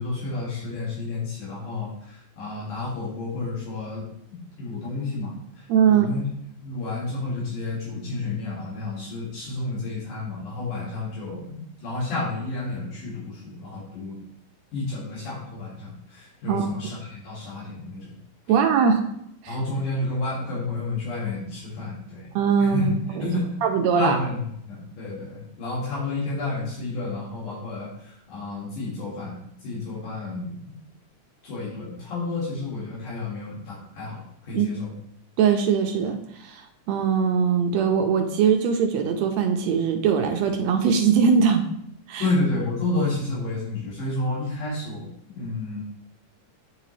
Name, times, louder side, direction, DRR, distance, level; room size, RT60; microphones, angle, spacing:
voice 1, 0.0-5.3 5.9-6.2 6.6-14.2 14.7-18.1 19.5-22.3 22.6-22.9 23.2-23.6 24.0-30.7 31.4-34.9 42.2-45.1 45.3-45.8, left 2 dB, 85° left, -7 dB, 3.5 m, -30 dB
voice 2, 5.7-6.1 16.5-16.7 18.5-19.0 19.4-19.6 22.3-23.3 23.6-24.2 34.5-34.7 35.4-41.6 42.1-42.3, right 6 dB, 75° right, 4 dB, 1.7 m, -21 dB
9.2 x 3.8 x 3.2 m, 0.73 s
omnidirectional pair, 3.4 m